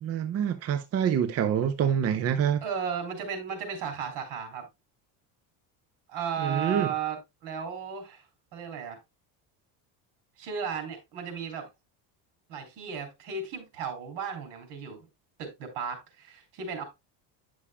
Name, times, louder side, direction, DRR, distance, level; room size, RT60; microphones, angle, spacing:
voice 1, 0.0-2.6 6.4-6.9, right 8 dB, 35° right, 0.6 m, -26 dB
voice 2, 2.6-4.7 6.1-8.2 8.5-9.0 10.4-11.7 12.5-15.0 15.4-16.8, right 6 dB, 70° right, 3.1 m, -35 dB
9.9 x 6.3 x 2.2 m
cardioid pair, 125°, 43 cm